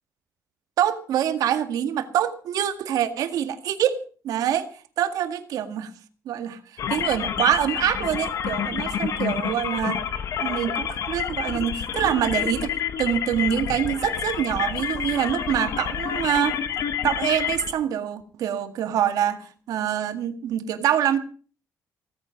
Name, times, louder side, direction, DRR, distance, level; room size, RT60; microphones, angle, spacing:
voice 1, 0.8-4.7 5.0-5.9 6.3-6.6 6.9-10.0 10.4-12.7 13.0-16.6 17.0-21.2, right 10 dB, 90° right, 9 dB, 1.9 m, -25 dB
sound 1, 6.8-17.7, left 8 dB, 60° left, 1.7 m, -28 dB
17.0 x 14.5 x 5.2 m, 0.41 s
cardioid pair, 170°, 6 cm